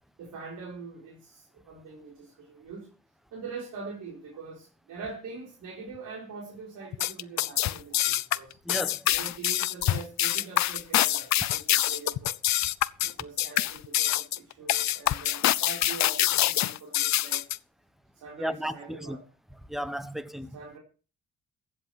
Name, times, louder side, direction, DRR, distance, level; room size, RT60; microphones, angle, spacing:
voice 1, 0.2-2.9 3.3-8.6 9.1-12.4 13.0-17.5 18.1-19.2 20.5-20.8, right 4 dB, 80° right, 4.1 m, -43 dB
sound 1, 6.9-17.6, left 14 dB, 65° left, 0.6 m, -25 dB
voice 2, 8.6-9.1 18.4-19.2 19.7-20.5, equal, ahead, 1.3 m, -34 dB
15.0 x 8.2 x 5.8 m
cardioid pair, 90°, 30 cm